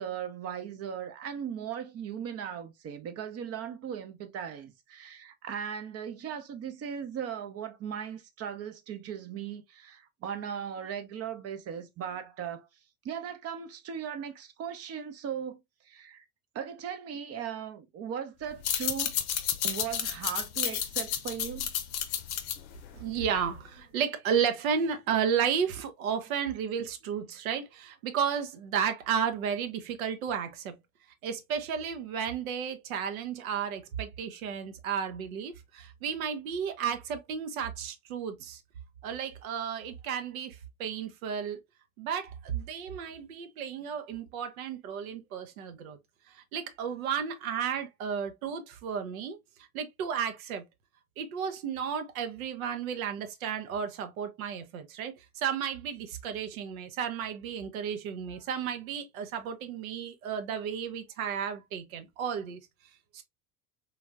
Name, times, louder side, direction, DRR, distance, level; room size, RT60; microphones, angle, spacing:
voice 1, 0.0-12.7 13.0-16.2 16.5-19.1 19.6-21.7, right 8 dB, 35° right, 0.6 m, -38 dB
sound 1, 18.5-23.7, left 9 dB, 75° left, 0.6 m, -32 dB
voice 2, 22.9-30.8 31.2-38.6 39.0-41.6 42.0-46.0 46.3-49.4 49.7-50.7 51.2-62.6 63.1-63.2, right 7 dB, 75° right, 0.6 m, -33 dB
3.2 x 2.3 x 2.2 m
hypercardioid pair, 70°, 42 cm